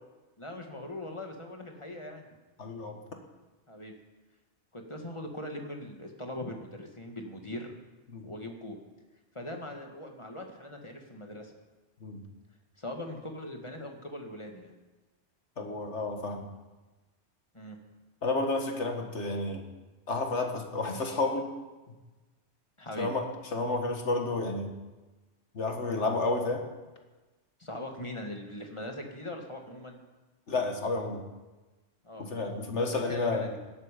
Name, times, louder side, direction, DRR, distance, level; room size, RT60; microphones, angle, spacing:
voice 1, 0.4-2.3 3.7-3.9 4.7-7.7 8.2-8.8 9.4-11.5 12.8-14.7 17.5-17.8 22.8-23.1 27.6-30.0 32.0-32.3 32.8-33.6, left 1 dB, 25° left, 3 dB, 1.8 m, -40 dB
voice 2, 2.6-3.0 8.1-8.3 12.0-12.2 15.6-16.5 18.2-19.6 20.1-21.5 23.0-23.3 23.5-24.7 25.5-26.6 30.5-31.2 32.2-33.5, left 3 dB, 75° left, 4 dB, 2.0 m, -31 dB
16.5 x 12.5 x 5.2 m, 1.2 s
omnidirectional pair, 1.2 m